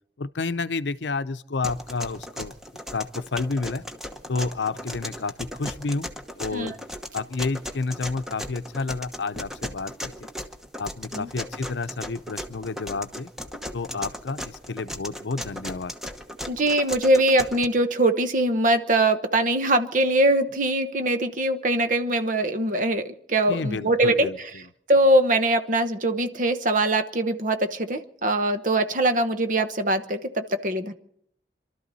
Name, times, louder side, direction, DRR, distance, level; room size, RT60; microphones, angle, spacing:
voice 1, 0.2-2.5 2.9-3.8 4.3-6.8 7.1-10.3 10.8-13.3 13.7-15.9 23.5-24.4, left 3 dB, 80° left, 0.7 m, -30 dB
sound 1, 1.6-17.7, equal, 5° right, 1.1 m, -36 dB
voice 2, 16.5-24.5 24.9-30.9, right 1 dB, 45° right, 1.1 m, -22 dB
26.5 x 13.0 x 4.1 m
head